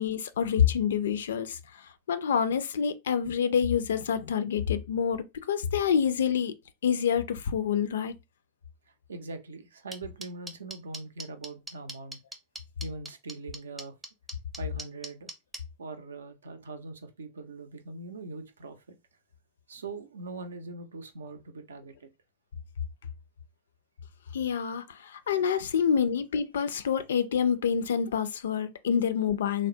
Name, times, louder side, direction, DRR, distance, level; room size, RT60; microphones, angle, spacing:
voice 1, 0.0-6.5 6.8-8.1 24.3-29.7, left 7 dB, 65° left, 0.3 m, -27 dB
voice 2, 8.9-12.2 12.8-14.0 14.6-15.3 15.8-19.0 19.7-22.1, right 3 dB, 70° right, 0.5 m, -42 dB
sound 1, 9.9-15.6, right 2 dB, 10° right, 0.5 m, -39 dB
3.4 x 2.0 x 2.6 m
figure-of-eight pair, 90°, 0 cm